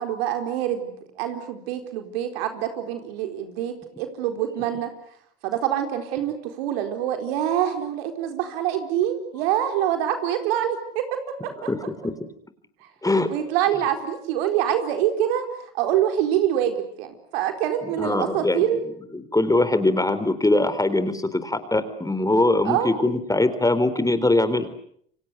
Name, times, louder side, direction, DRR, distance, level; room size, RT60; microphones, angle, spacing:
voice 1, 0.0-4.9 5.4-11.7 12.8-12.9 13.3-15.4 15.7-18.8 22.6-22.9, right 10 dB, 75° right, 6 dB, 4.3 m, -25 dB
voice 2, 11.7-12.3 13.0-13.3 17.8-18.6 19.1-24.7, left 2 dB, 10° left, 12 dB, 4.0 m, -22 dB
29.0 x 24.5 x 8.1 m, 0.67 s
hypercardioid pair, 75°, 30 cm